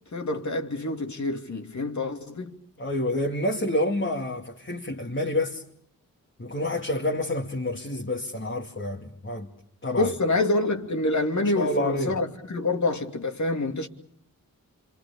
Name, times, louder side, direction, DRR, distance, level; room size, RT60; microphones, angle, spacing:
voice 1, 0.1-2.6 9.9-13.9, left 2 dB, 55° left, 2.6 m, -27 dB
voice 2, 2.8-5.6 6.4-9.5 9.8-10.1 11.5-12.2, left 1 dB, 35° left, 2.4 m, -28 dB
26.5 x 25.0 x 7.0 m
cardioid pair, 50°, 35 cm